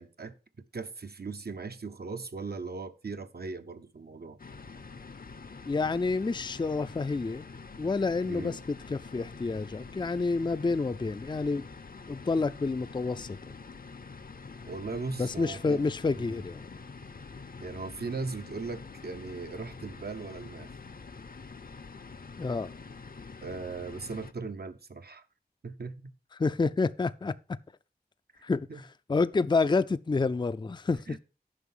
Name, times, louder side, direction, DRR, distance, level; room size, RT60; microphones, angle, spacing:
voice 1, 0.0-4.4 8.3-8.6 14.7-15.9 16.1-16.4 17.6-20.7 23.4-25.2 25.6-26.1 28.7-28.8 31.1-31.2, right 4 dB, 70° right, 0.9 m, -38 dB
sound 1, 4.4-24.3, left 4 dB, 60° left, 0.7 m, -46 dB
voice 2, 5.7-7.5 7.8-11.6 12.1-13.4 15.2-16.7 22.4-22.7 26.4-27.3 28.4-31.2, left 3 dB, 30° left, 0.4 m, -29 dB
9.8 x 5.7 x 5.5 m
wide cardioid pair, 50°, 17 cm